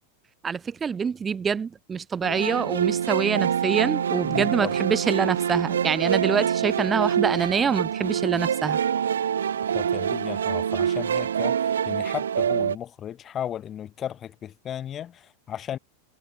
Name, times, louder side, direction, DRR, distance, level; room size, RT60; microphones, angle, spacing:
voice 1, 0.4-8.8, right 6 dB, 20° right, 0.4 m, -25 dB
sound 1, 2.2-12.8, right 8 dB, 65° right, 1.3 m, -25 dB
voice 2, 4.2-4.8 9.7-15.8, left 10 dB, 25° left, 1.0 m, -35 dB
figure-of-eight pair, 90°, 0 cm